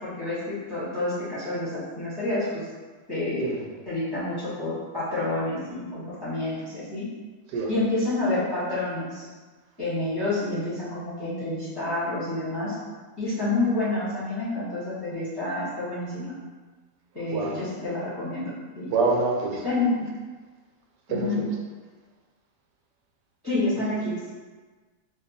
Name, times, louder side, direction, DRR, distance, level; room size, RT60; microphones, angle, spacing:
voice 1, 0.0-2.7 3.1-3.4 3.9-7.1 7.7-9.2 9.8-12.8 13.2-16.3 17.1-18.5 18.8-18.9 19.6-20.0 21.1-21.4 23.4-24.3, left 2 dB, 20° left, -11 dB, 0.8 m, -28 dB
voice 2, 17.3-17.6 18.9-19.6 21.1-21.3, right 3 dB, 85° right, 0 dB, 1.2 m, -25 dB
2.6 x 2.3 x 4.0 m, 1.4 s
omnidirectional pair, 1.8 m